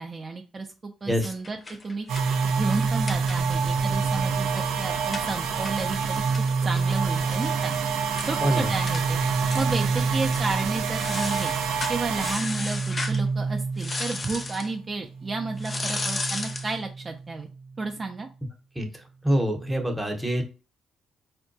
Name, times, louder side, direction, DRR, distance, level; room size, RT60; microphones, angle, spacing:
voice 1, 0.0-1.6 1.8-6.2 6.6-7.7 8.2-11.5 11.9-17.5 17.8-18.3, right 3 dB, 30° right, 3 dB, 0.4 m, -32 dB
sound 1, 1.1-3.7 4.0-4.1 4.4-7.5 7.8-7.9 8.1-8.4 8.9-9.0 9.5-9.9 10.2-10.5 10.9-13.2 13.8-14.7 15.6-16.7, left 3 dB, 30° left, 0.5 m, -35 dB
sound 2, 2.1-14.8 15.1-17.6, right 5 dB, 85° right, 0.4 m, -27 dB
voice 2, 19.2-20.4, equal, 10° right, 3 dB, 0.8 m, -25 dB
4.4 x 2.2 x 2.5 m, 0.34 s
cardioid pair, 90°, 0 cm